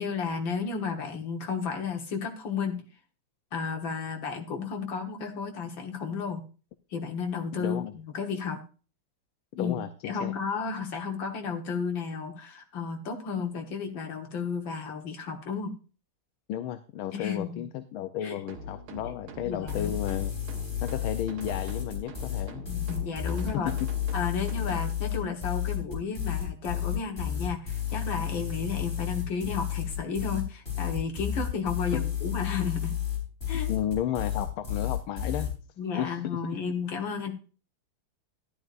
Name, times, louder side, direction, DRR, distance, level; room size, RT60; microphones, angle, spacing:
voice 1, 0.0-2.8 3.5-6.4 6.9-8.6 9.6-9.8 10.0-15.7 17.1-17.7 18.2-18.4 19.4-19.9 22.7-23.7 24.1-33.0 33.5-33.7 35.8-37.3, left 5 dB, 60° left, 3 dB, 2.1 m, -33 dB
voice 2, 7.5-8.0 9.5-10.3 16.5-20.3 20.8-22.6 23.5-23.9 31.9-32.0 33.7-35.5 36.0-36.4, left 11 dB, 75° left, 9 dB, 1.4 m, -33 dB
sound 1, 18.5-24.9, equal, 70° right, 2.1 m, -43 dB
sound 2, 19.7-35.5, left 10 dB, 25° left, 4.0 m, -31 dB
13.5 x 11.0 x 2.5 m, 0.35 s
omnidirectional pair, 2.4 m